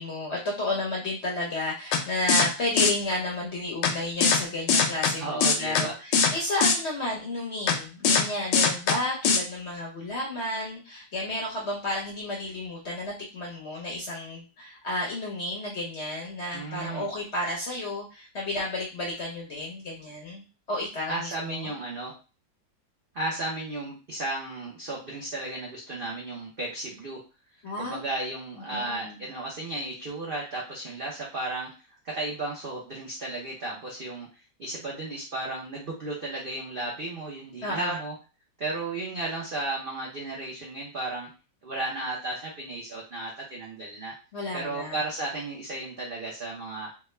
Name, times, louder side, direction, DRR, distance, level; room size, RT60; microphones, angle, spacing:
voice 1, 0.0-21.7 27.6-28.0 28.6-29.2 37.6-38.0 44.3-45.0, left 1 dB, 55° left, -3 dB, 0.7 m, -32 dB
sound 1, 1.9-2.0 2.3-2.5 2.8-2.9 3.8-3.9 4.2-4.4 4.7-5.1 5.4-5.8 6.1-6.3 6.6-6.8 7.7-7.8 8.0-8.2 8.5-9.0 9.2-9.4, left 5 dB, 75° left, 1.2 m, -20 dB
voice 2, 5.2-5.9 16.5-17.1 21.1-22.1 23.1-27.2 27.8-31.7 32.0-38.1 38.6-41.3 41.6-44.1 44.5-46.9, right 2 dB, 75° right, -3 dB, 0.5 m, -34 dB
3.4 x 2.2 x 3.2 m, 0.33 s
omnidirectional pair, 2.0 m